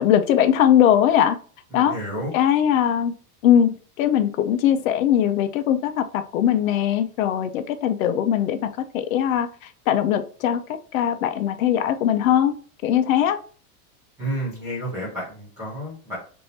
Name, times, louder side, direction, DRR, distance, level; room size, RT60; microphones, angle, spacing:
voice 1, 0.0-1.4 1.7-2.0 2.3-3.1 3.4-8.6 8.9-9.5 9.9-10.6 10.9-12.6 12.8-13.4, left 10 dB, 60° left, 10 dB, 0.5 m, -20 dB
voice 2, 1.7-2.3 14.2-16.2, equal, 5° right, -8 dB, 0.4 m, -30 dB
3.3 x 2.6 x 2.7 m, 0.41 s
supercardioid pair, 175°, 47 cm